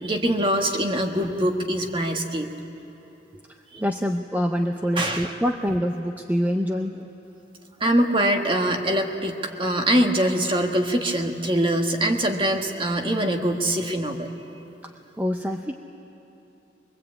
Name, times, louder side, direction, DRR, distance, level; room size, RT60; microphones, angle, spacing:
voice 1, 0.0-2.5 3.7-3.8 5.0-5.3 7.8-14.3, right 1 dB, 30° right, 3 dB, 1.5 m, -23 dB
voice 2, 3.7-7.1 14.8-15.8, equal, 10° right, 4 dB, 0.6 m, -26 dB
23.0 x 22.0 x 8.5 m, 3.0 s
head